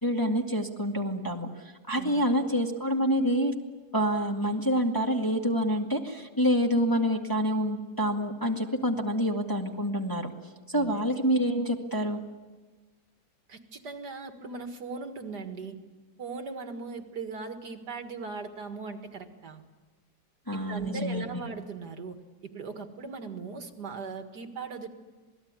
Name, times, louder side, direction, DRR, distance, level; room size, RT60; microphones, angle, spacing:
voice 1, 0.0-3.5 3.9-10.3 10.7-12.2 20.5-21.2, equal, 10° left, 1 dB, 1.8 m, -27 dB
voice 2, 13.5-15.8 16.2-19.6 20.5-24.9, right 4 dB, 60° right, 6 dB, 2.3 m, -39 dB
27.5 x 19.5 x 9.6 m, 1.3 s
omnidirectional pair, 2.0 m